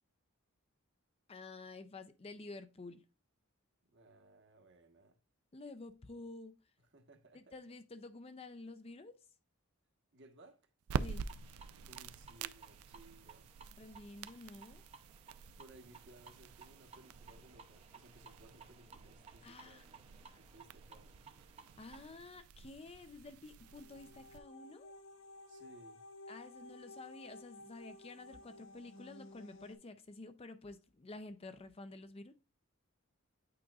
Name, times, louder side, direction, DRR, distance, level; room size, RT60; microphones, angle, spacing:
voice 1, 1.3-3.0 5.5-6.6 7.3-9.2 11.0-11.2 13.8-14.8 19.4-20.0 21.8-24.9 26.3-32.3, left 2 dB, 25° left, 0.5 m, -50 dB
voice 2, 3.9-5.2 6.8-7.6 10.1-10.6 11.9-13.5 15.6-19.9 20.2-21.2 25.5-26.0, right 1 dB, 55° right, 1.2 m, -61 dB
sound 1, 10.8-24.4, right 6 dB, 80° right, 0.4 m, -47 dB
sound 2, 11.0-22.2, right 5 dB, 25° right, 0.6 m, -59 dB
sound 3, 23.7-29.7, left 2 dB, 65° left, 0.8 m, -55 dB
8.7 x 5.0 x 2.3 m
head